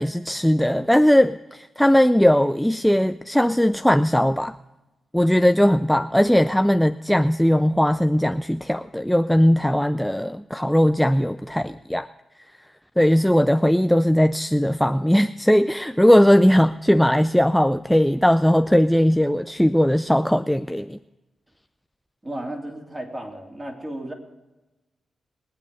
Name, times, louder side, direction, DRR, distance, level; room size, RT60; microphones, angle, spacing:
voice 1, 0.0-4.6 5.1-12.1 13.0-21.0, equal, 5° left, 10 dB, 0.4 m, -19 dB
voice 2, 22.2-24.1, right 1 dB, 20° right, 0 dB, 3.4 m, -34 dB
21.0 x 8.9 x 5.3 m, 1.1 s
cardioid pair, 75°, 0 cm